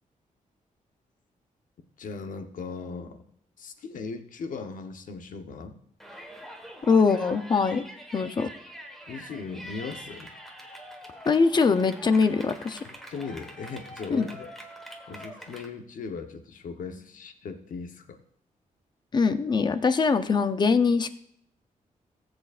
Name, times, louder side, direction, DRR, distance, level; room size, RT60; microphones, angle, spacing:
voice 1, 2.0-3.2 3.6-5.8 9.1-10.3 12.8-14.5 15.1-18.2, left 4 dB, 70° left, 6 dB, 1.0 m, -38 dB
Yell, 6.0-15.7, equal, ahead, 1.4 m, -44 dB
voice 2, 6.9-7.8 8.1-8.5 11.3-12.8 14.1-14.3 19.1-21.1, left 4 dB, 30° left, 10 dB, 0.6 m, -22 dB
18.5 x 8.0 x 2.5 m, 0.71 s
wide cardioid pair, 160°, 14 cm